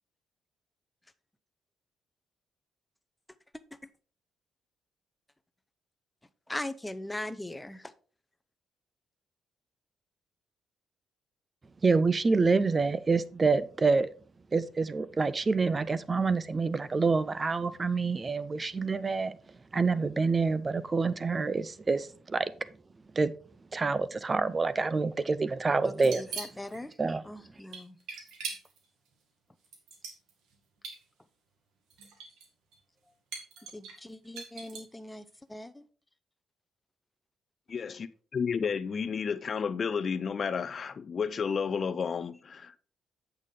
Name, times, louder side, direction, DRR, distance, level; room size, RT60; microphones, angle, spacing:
voice 1, 6.5-7.9 25.8-27.0 27.2-28.0 33.7-35.9, left 1 dB, 10° left, 0.7 m, -40 dB
voice 2, 11.8-14.1 14.5-19.4 19.7-22.5 23.2-23.3 23.7-26.2 27.0-27.2, right 4 dB, 30° right, 0.5 m, -27 dB
sound 1, 25.9-26.8 27.7-28.8 29.6-30.5 30.8-31.0 31.9-32.5 32.7-32.8 33.3-35.0, right 5 dB, 90° right, 2.0 m, -41 dB
voice 3, 37.7-42.7, left 6 dB, 45° left, 0.5 m, -32 dB
8.3 x 6.7 x 3.7 m
cardioid pair, 90°, 0 cm